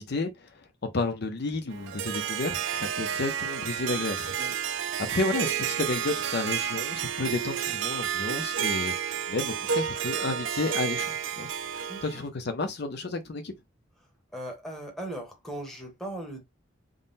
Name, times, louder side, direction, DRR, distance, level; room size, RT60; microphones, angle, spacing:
voice 1, 0.0-4.3 5.1-8.9 9.3-11.5 12.0-13.5, left 3 dB, 55° left, 0.5 m, -31 dB
Harp, 1.7-12.2, right 8 dB, 70° right, 0.4 m, -31 dB
voice 2, 11.9-12.2 14.3-16.4, right 1 dB, ahead, 0.9 m, -38 dB
3.7 x 2.0 x 3.9 m
head